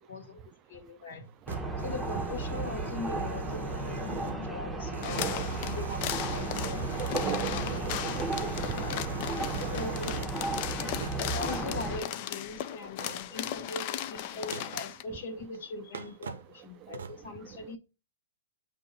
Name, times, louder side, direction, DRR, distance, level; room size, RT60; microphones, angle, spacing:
voice 1, 0.1-0.4 0.7-7.7 8.4-9.0 9.5-10.2 11.0-17.8, left 3 dB, 65° left, 1.7 m, -41 dB
sound 1, 1.2-4.5 4.9-10.4 11.0-11.4 13.7-13.8 14.5-14.9 15.5-15.6 15.9-16.5 16.9-17.2, right 6 dB, 80° right, 0.6 m, -42 dB
sound 2, 1.5-12.0, right 2 dB, 5° right, 0.8 m, -34 dB
voice 2, 4.7-5.6 6.3-10.1 10.6-11.1, right 13 dB, 30° right, 0.4 m, -41 dB
sound 3, 5.0-15.0, left 12 dB, 45° left, 0.4 m, -37 dB
8.4 x 2.9 x 4.1 m
hypercardioid pair, 135°, 0 cm